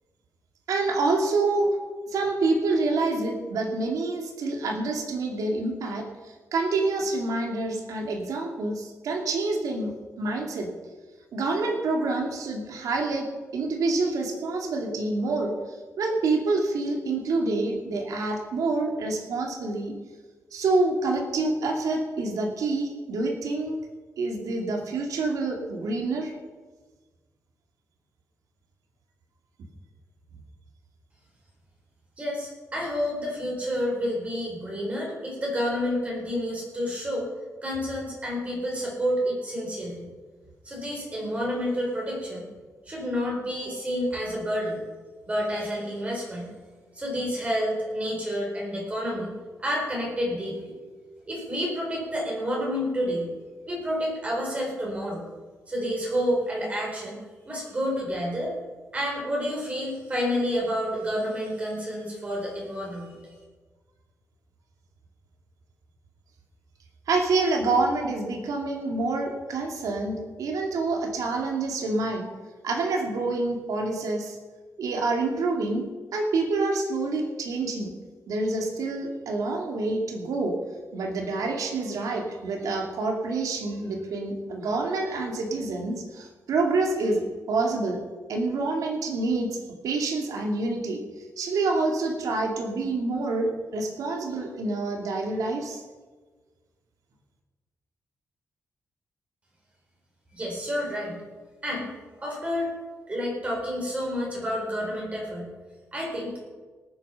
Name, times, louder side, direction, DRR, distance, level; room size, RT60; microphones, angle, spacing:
voice 1, 0.7-1.8 2.1-10.7 11.3-19.9 20.5-23.8 24.2-26.3 67.1-72.3 72.6-74.4 74.8-75.9 76.1-77.9 78.3-80.6 80.9-88.0 88.3-91.0 91.4-95.8, right 3 dB, 90° right, 2 dB, 2.6 m, -27 dB
voice 2, 32.2-37.3 37.6-40.1 40.6-42.5 42.9-44.8 45.3-46.5 46.9-49.3 49.6-50.7 51.3-53.3 53.7-55.3 55.7-57.2 57.5-58.5 58.9-63.1 100.3-101.2 101.6-101.9 102.2-102.7 103.1-105.5 105.9-106.3, equal, 25° right, -2 dB, 4.4 m, -29 dB
18.5 x 9.0 x 5.7 m, 1.4 s
wide cardioid pair, 165°, 6 cm